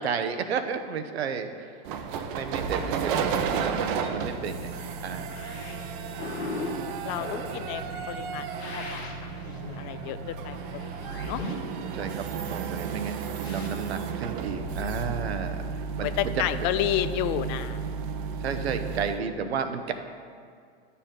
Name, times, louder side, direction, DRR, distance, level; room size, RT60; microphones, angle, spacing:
voice 1, 0.0-1.7 2.3-5.3 11.9-16.4 18.4-19.9, right 6 dB, 85° right, 8 dB, 0.8 m, -32 dB
creaking mini excavator, 1.8-19.2, right 6 dB, 55° right, 0.8 m, -33 dB
sound 1, 5.3-13.7, left 3 dB, 85° left, 1.4 m, -39 dB
voice 2, 5.6-6.3 7.0-7.8 8.1-8.5 8.7-9.0 9.5-11.4 16.0-17.8, left 12 dB, 35° left, 13 dB, 0.4 m, -31 dB
11.0 x 6.9 x 3.8 m, 2.2 s
hypercardioid pair, 115°, 31 cm